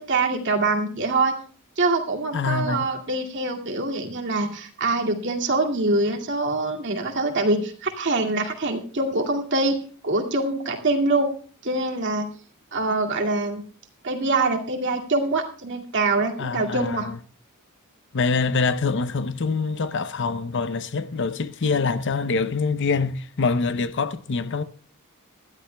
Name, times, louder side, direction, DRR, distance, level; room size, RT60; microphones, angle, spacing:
voice 1, 0.0-1.3 1.8-9.7 10.0-11.3 11.6-12.3 12.7-13.6 14.0-17.1, right 2 dB, 55° right, 2.3 m, -24 dB
voice 2, 2.3-2.9 16.4-17.2 18.1-24.6, left 4 dB, 55° left, 0.6 m, -25 dB
20.0 x 13.0 x 2.2 m
head